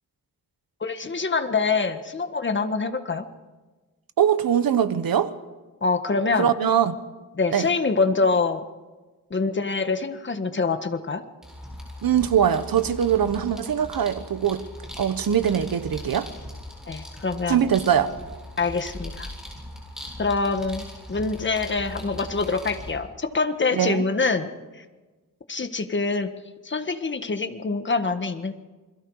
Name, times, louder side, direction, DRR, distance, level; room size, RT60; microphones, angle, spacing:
voice 1, 0.8-3.3 5.8-6.5 7.3-8.6 9.3-11.2 16.9-17.6 18.6-19.3 20.2-24.8 25.5-26.3 26.6-28.5, left 4 dB, 35° left, 8 dB, 1.6 m, -25 dB
voice 2, 4.2-5.3 6.4-7.0 7.5-7.7 12.0-14.6 15.0-16.3 17.5-18.1 23.7-24.0, right 9 dB, 80° right, 11 dB, 1.3 m, -22 dB
sound 1, 11.4-22.9, left 1 dB, ahead, 7.6 m, -40 dB
28.0 x 22.0 x 4.9 m, 1.2 s
wide cardioid pair, 135°, 35 cm